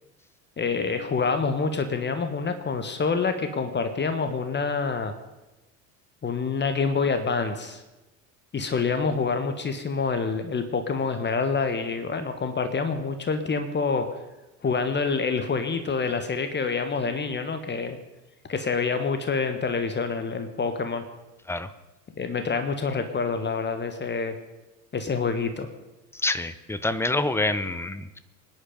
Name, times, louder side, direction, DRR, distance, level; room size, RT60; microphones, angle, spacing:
voice 1, 0.6-5.1 6.2-7.8 8.5-14.1 14.6-18.0 18.5-21.0 22.2-24.3 24.9-25.7, left 4 dB, 20° left, 8 dB, 1.4 m, -27 dB
voice 2, 26.2-28.2, left 2 dB, 5° left, 13 dB, 0.7 m, -27 dB
24.5 x 10.0 x 5.5 m, 1.0 s
figure-of-eight pair, 65°, 49 cm